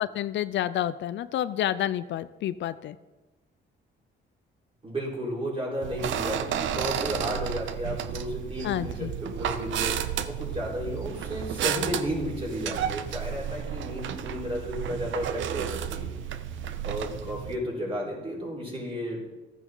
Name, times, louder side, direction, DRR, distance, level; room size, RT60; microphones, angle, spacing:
voice 1, 0.0-3.0 8.6-9.1, left 12 dB, 70° left, 14 dB, 0.5 m, -29 dB
voice 2, 4.8-16.1 16.8-19.2, equal, 30° right, -5 dB, 4.6 m, -33 dB
sound 1, 5.8-17.6, right 9 dB, 75° right, 0.7 m, -32 dB
13.0 x 9.1 x 3.9 m, 1.1 s
cardioid pair, 90°, 20 cm